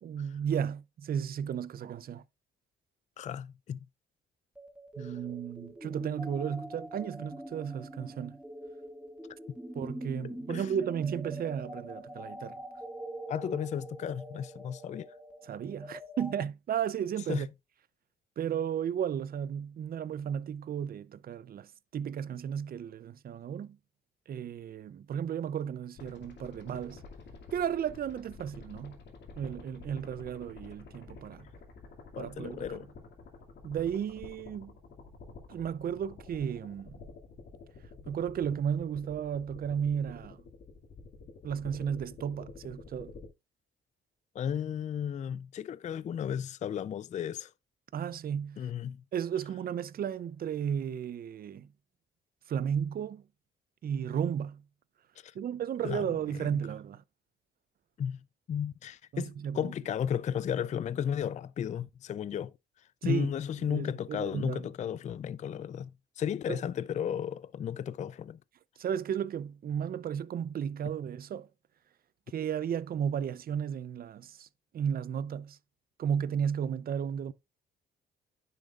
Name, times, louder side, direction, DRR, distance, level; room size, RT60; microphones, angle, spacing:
voice 1, 0.0-2.2 5.0-8.4 9.7-12.6 15.4-17.5 18.4-23.8 24.3-27.0 27.5-29.0 29.4-31.5 32.2-32.9 33.6-34.7 35.5-37.0 38.1-40.4 41.4-43.1 47.9-48.7 49.1-51.7 52.5-53.2 53.8-54.6 55.3-57.0 59.1-59.7 63.0-63.3 63.6-64.7 66.5-66.6 68.8-71.5 72.3-74.5 74.7-75.6 76.0-77.3, right 8 dB, 50° right, 0.5 m, -34 dB
voice 2, 3.2-3.8 5.0-5.1 10.5-10.6 13.3-15.1 17.3-17.4 32.1-32.9 44.4-47.5 48.6-49.0 55.2-55.3 55.8-56.1 58.0-58.2 58.5-62.5 63.0-65.9 66.2-68.4, left 8 dB, 35° left, 0.4 m, -34 dB
sound 1, 4.6-16.4, equal, 5° right, 1.4 m, -44 dB
sound 2, 26.0-43.3, left 4 dB, 60° left, 2.4 m, -50 dB
10.0 x 6.7 x 2.4 m
cardioid pair, 90°, 20 cm